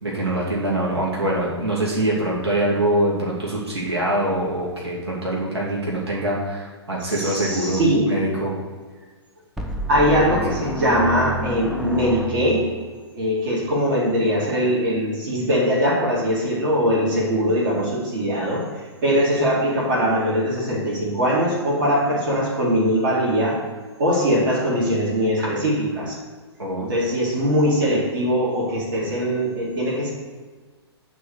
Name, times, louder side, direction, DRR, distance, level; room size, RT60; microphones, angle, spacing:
voice 1, 0.0-8.6 26.6-26.9, right 1 dB, 65° right, -5 dB, 2.1 m, -24 dB
voice 2, 7.1-8.2 9.9-12.8 13.1-23.6 24.0-26.2 26.8-30.1, equal, 50° right, -4 dB, 2.0 m, -21 dB
sound 1, 9.6-12.8, right 1 dB, ahead, 0.4 m, -30 dB
9.2 x 3.1 x 6.5 m, 1.4 s
figure-of-eight pair, 115°, 14 cm